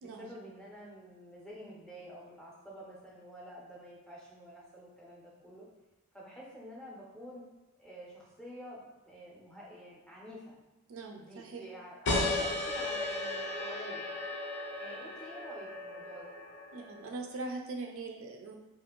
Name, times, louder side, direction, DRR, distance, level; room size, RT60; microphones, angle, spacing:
voice 1, 0.0-5.7 6.1-7.4 7.8-10.5 11.2-14.1 14.8-16.3, equal, 5° left, -5 dB, 0.5 m, -49 dB
voice 2, 10.9-11.6 16.7-18.6, right 3 dB, 75° right, 3 dB, 0.4 m, -41 dB
sound 1, 12.0-17.2, left 2 dB, 55° left, 0.5 m, -35 dB
2.5 x 2.5 x 2.9 m, 1.0 s
head